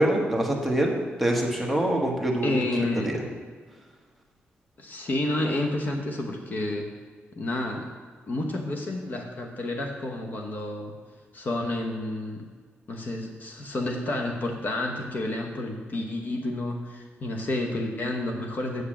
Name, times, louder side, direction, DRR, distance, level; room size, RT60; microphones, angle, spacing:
voice 1, 0.0-2.5 3.0-3.2, right 1 dB, ahead, 0 dB, 1.2 m, -24 dB
voice 2, 2.4-3.2 4.8-6.9 7.3-7.9 8.3-10.9 11.3-12.5 12.9-18.8, left 2 dB, 45° left, 2 dB, 1.0 m, -30 dB
6.9 x 6.4 x 7.3 m, 1.5 s
wide cardioid pair, 140°, 4 cm